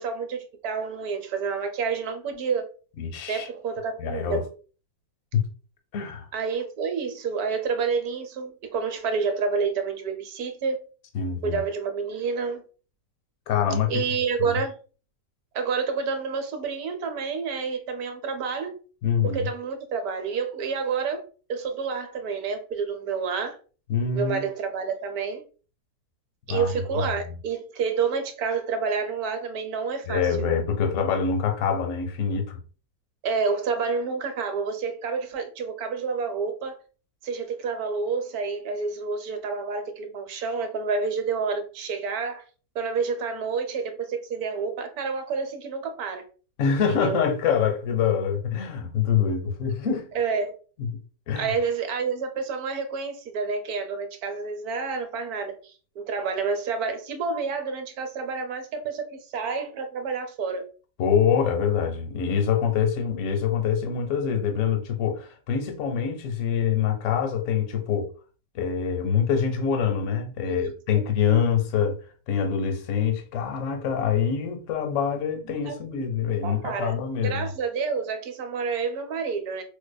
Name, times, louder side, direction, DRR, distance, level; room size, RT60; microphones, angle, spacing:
voice 1, 0.0-2.7 3.3-4.4 6.3-10.8 11.4-12.6 13.9-14.8 15.5-18.7 19.3-21.2 21.5-23.6 24.1-25.4 26.5-30.6 33.2-36.8 37.2-42.4 42.7-46.2 46.9-47.2 50.1-50.5 51.3-60.6 70.4-70.7 75.6-75.7 76.3-77.0 77.2-79.6, right 5 dB, 75° right, 1.1 m, -29 dB
voice 2, 3.0-3.5 4.0-4.4 5.3-5.4 5.9-6.3 11.1-11.6 13.5-13.9 14.4-14.6 19.0-19.5 23.9-24.5 26.5-27.3 30.1-32.6 46.6-50.1 50.8-50.9 51.3-51.5 61.0-68.1 68.5-72.0 72.3-77.5, left 7 dB, 60° left, 0.9 m, -25 dB
4.6 x 2.2 x 2.2 m
omnidirectional pair, 1.7 m